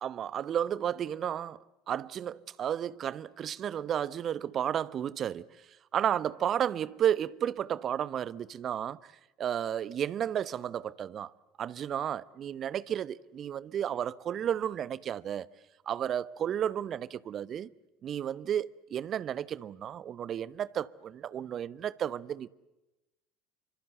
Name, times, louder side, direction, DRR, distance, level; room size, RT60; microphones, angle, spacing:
voice 1, 0.0-1.6 1.9-5.5 5.9-9.1 9.4-11.3 11.6-15.5 15.9-17.7 18.0-22.5, right 9 dB, 40° right, 1.0 m, -32 dB
27.0 x 25.0 x 7.8 m
figure-of-eight pair, 65°, 0 cm